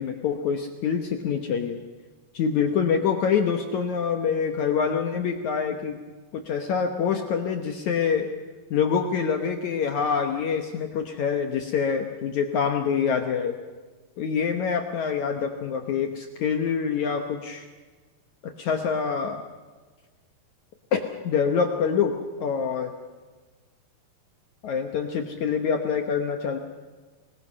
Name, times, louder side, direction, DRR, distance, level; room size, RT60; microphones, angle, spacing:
voice 1, 0.0-1.8 2.3-6.0 6.3-8.3 8.7-13.6 14.2-17.7 18.4-19.4 20.9-22.9 24.6-26.6, left 6 dB, 70° left, 5 dB, 1.9 m, -26 dB
26.0 x 20.5 x 5.5 m, 1.4 s
omnidirectional pair, 4.6 m